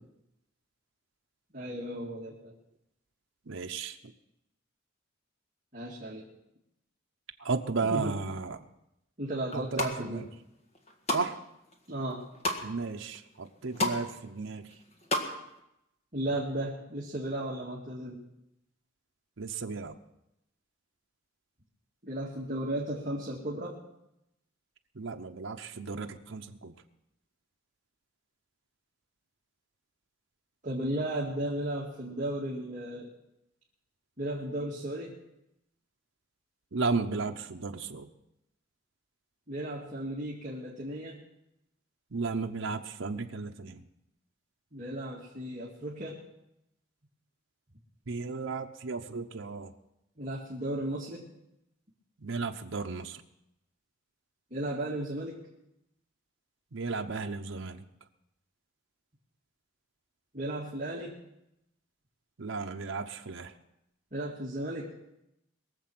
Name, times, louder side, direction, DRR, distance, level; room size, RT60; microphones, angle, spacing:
voice 1, 1.5-2.5 5.7-6.3 7.8-8.2 9.2-10.2 11.9-12.2 16.1-18.2 22.0-23.8 30.6-33.1 34.2-35.1 39.5-41.2 44.7-46.2 50.2-51.3 54.5-55.4 60.3-61.2 64.1-64.9, right 1 dB, 40° right, -5 dB, 2.1 m, -35 dB
voice 2, 3.5-4.0 7.4-8.6 9.5-10.3 11.1-11.4 12.6-14.7 19.4-20.0 25.0-26.7 36.7-38.1 42.1-43.8 48.1-49.7 52.2-53.2 56.7-57.8 62.4-63.5, right 4 dB, 75° right, 4 dB, 0.8 m, -34 dB
sound 1, 9.5-9.9 10.5-11.3 11.7-12.6 13.1-13.2 13.4-14.0 14.3-15.3 15.6-15.7, left 2 dB, 35° left, 1.8 m, -31 dB
22.0 x 7.5 x 6.1 m, 0.85 s
head